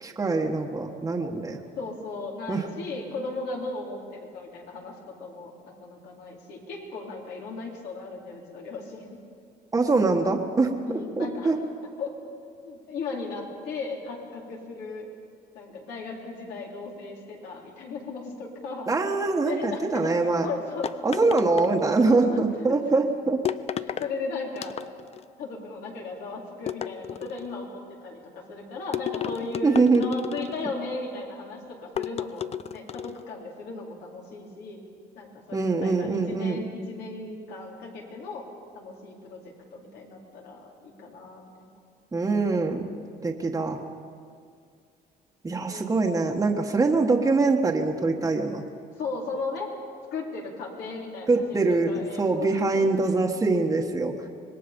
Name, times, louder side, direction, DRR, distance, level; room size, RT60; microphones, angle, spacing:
voice 1, 0.0-1.6 2.5-2.7 9.7-10.7 11.2-11.6 18.9-20.5 21.0-23.4 29.6-30.0 35.5-36.6 42.1-42.8 43.2-43.8 45.4-48.6 51.3-54.1, right 3 dB, 20° right, 1 dB, 1.4 m, -23 dB
voice 2, 1.8-9.2 10.9-11.5 12.0-12.2 12.6-15.1 15.5-18.9 19.4-20.2 20.4-21.4 22.3-23.1 23.8-24.8 25.4-32.4 32.7-34.8 35.1-38.5 38.7-41.7 45.7-45.9 46.2-46.4 49.0-49.7 50.1-52.9, left 3 dB, 80° left, -2 dB, 4.2 m, -36 dB
sound 1, 20.8-22.2 23.5-24.1 24.6-25.2 26.7-27.6 28.9-30.7 32.0-33.2, left 9 dB, 40° left, 0.5 m, -33 dB
25.5 x 20.0 x 5.3 m, 2.2 s
cardioid pair, 110°, 17 cm